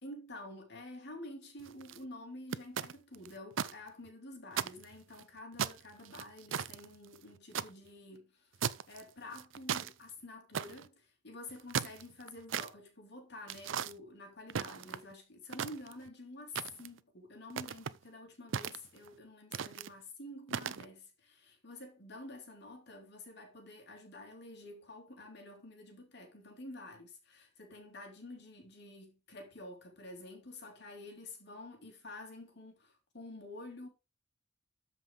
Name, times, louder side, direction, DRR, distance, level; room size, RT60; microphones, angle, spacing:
voice 1, 0.0-8.5 8.9-33.9, left 2 dB, 60° left, 2.9 m, -49 dB
sound 1, 1.6-2.0 2.5-3.7 4.1-4.2 4.5-5.2 5.6-7.7 8.6-9.0 9.3-9.9 10.5-10.9 11.5-12.7 13.5-13.9 14.5-15.1 15.5-16.1 16.6-17.0 17.5-18.0 18.5-19.1 19.5-19.9 20.5-20.9, right 8 dB, 75° right, 0.5 m, -37 dB
13.0 x 5.5 x 3.8 m
head